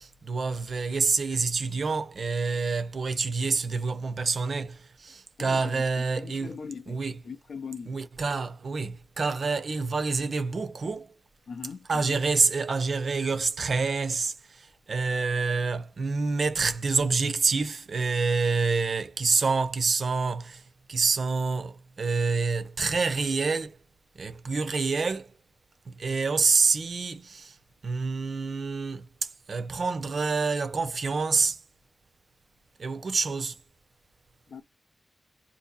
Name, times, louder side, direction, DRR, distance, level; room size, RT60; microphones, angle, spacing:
voice 1, 0.0-6.5 6.9-7.2 7.9-11.1 11.9-23.8 24.1-25.3 25.9-27.6 27.8-31.6 32.8-33.6, right 4 dB, 60° right, 0.5 m, -27 dB
voice 2, 5.4-8.0 11.5-12.2 34.5-34.6, left 5 dB, 85° left, 0.4 m, -41 dB
2.7 x 2.6 x 3.9 m
wide cardioid pair, 130°, 0 cm